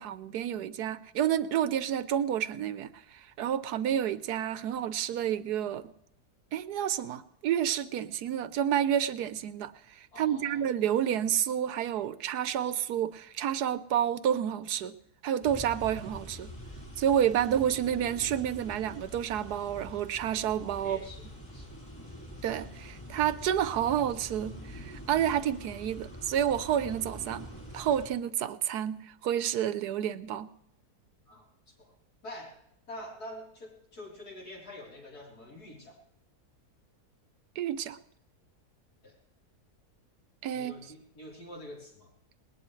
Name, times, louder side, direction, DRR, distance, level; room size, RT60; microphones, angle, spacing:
voice 1, 0.0-5.9 6.5-15.0 15.2-16.5 17.0-21.0 22.4-27.5 27.7-30.5 37.6-38.0 40.4-40.8, right 10 dB, 80° right, 14 dB, 1.3 m, -30 dB
voice 2, 10.1-10.6 20.8-21.2 21.5-21.7 31.3-31.9 32.2-32.5 32.9-36.0 39.0-39.2 40.5-42.1, left 1 dB, 70° left, -3 dB, 4.2 m, -46 dB
sound 1, 15.4-28.1, equal, 15° left, 5.2 m, -45 dB
20.0 x 19.5 x 3.2 m, 0.75 s
omnidirectional pair, 1.7 m